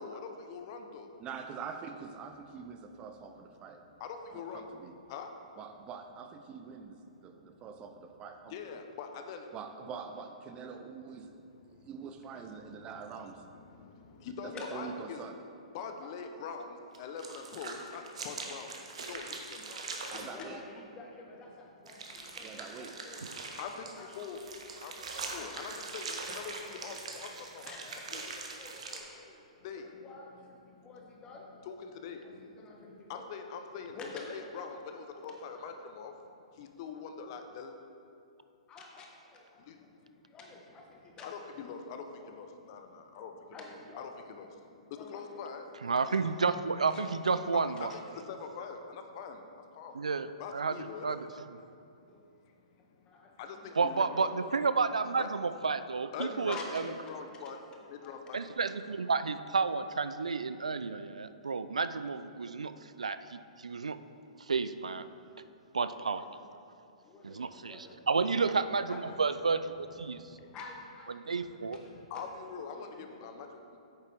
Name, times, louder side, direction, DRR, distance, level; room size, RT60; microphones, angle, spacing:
voice 1, 0.0-1.2 4.0-4.7 5.1-5.3 8.5-9.5 11.5-12.1 12.7-15.2 15.7-18.7 19.0-20.3 21.9-22.5 23.6-24.4 24.8-27.7 28.1-28.3 29.6-30.0 30.8-30.9 31.7-36.2 36.5-37.8 39.6-40.0 41.2-43.7 44.0-45.7 47.5-50.0 50.4-51.3 52.0-54.3 55.2-55.3 56.1-56.7 57.0-57.6 57.9-58.6 70.0-70.6 71.4-71.8 72.1-73.5, left 6 dB, 45° left, 6 dB, 0.7 m, -44 dB
voice 2, 1.2-3.8 4.3-4.9 5.6-8.6 9.5-13.5 14.4-15.4 20.1-20.6 22.4-23.0, right 6 dB, 25° right, 6 dB, 0.5 m, -45 dB
voice 3, 14.5-14.9 16.0-16.1 20.3-24.1 27.6-29.5 29.7-31.5 32.2-33.2 33.9-34.5 35.1-35.8 38.7-42.3 43.5-44.1 45.0-45.4 46.0-46.5 46.9-48.0 52.1-52.2 53.1-54.4 54.7-54.8 56.5-56.9 57.2-58.7 65.7-66.4 67.0-68.0 68.9-69.1 70.5-73.4, left 3 dB, 25° left, -1 dB, 1.3 m, -51 dB
sound 1, 16.9-20.3 21.9-29.0, right 4 dB, 70° right, 1.1 m, -42 dB
voice 4, 45.8-47.9 49.9-50.7 51.0-51.3 53.8-56.8 58.3-62.7 63.0-64.0 64.5-65.0 65.7-66.2 67.2-70.2 71.3-71.8, right 4 dB, 85° right, 12 dB, 0.3 m, -31 dB
9.0 x 6.6 x 3.4 m, 2.6 s
figure-of-eight pair, 115°, 4 cm